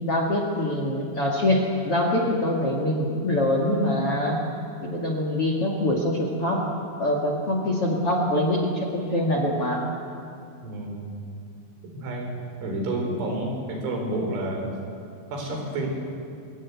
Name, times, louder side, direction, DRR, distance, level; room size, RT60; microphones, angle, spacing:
voice 1, 0.0-4.4 4.8-6.7 7.0-9.8, left 1 dB, 45° left, 1 dB, 2.1 m, -24 dB
voice 2, 10.6-11.1 11.9-12.3 12.6-14.7 15.3-15.9, right 1 dB, 85° right, 1 dB, 6.9 m, -29 dB
25.0 x 21.0 x 8.4 m, 2.4 s
omnidirectional pair, 5.4 m